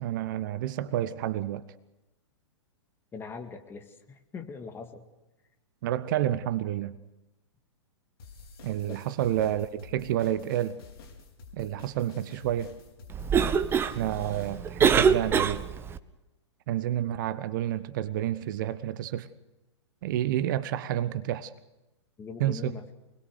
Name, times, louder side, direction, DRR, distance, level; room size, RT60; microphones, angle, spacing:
voice 1, 0.0-1.6 5.8-7.0 8.6-10.8 11.5-12.7 13.9-15.6 16.7-19.3 20.0-21.5 22.4-22.7, right 12 dB, 45° right, 0.8 m, -29 dB
voice 2, 3.1-5.1 8.9-9.0 22.2-22.8, left 5 dB, 15° left, 2.1 m, -41 dB
sound 1, 8.2-14.6, left 4 dB, 55° left, 4.5 m, -50 dB
Cough, 13.1-16.0, right 6 dB, 15° right, 0.9 m, -25 dB
25.5 x 20.5 x 6.6 m
figure-of-eight pair, 110°, 15 cm